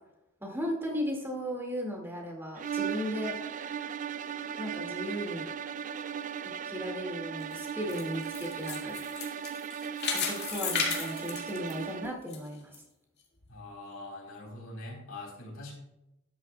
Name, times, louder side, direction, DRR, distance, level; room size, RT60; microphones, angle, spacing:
voice 1, 0.4-3.4 4.6-5.5 6.6-9.0 10.1-12.8, equal, 10° right, 0 dB, 2.1 m, -36 dB
sound 1, 2.6-12.2, right 8 dB, 35° right, 0.3 m, -37 dB
sound 2, 7.4-12.4 12.7-12.8 13.4-13.5, left 5 dB, 50° left, 2.5 m, -34 dB
voice 2, 13.5-15.7, left 2 dB, 75° left, -1 dB, 4.0 m, -43 dB
13.0 x 10.5 x 2.3 m, 0.89 s
head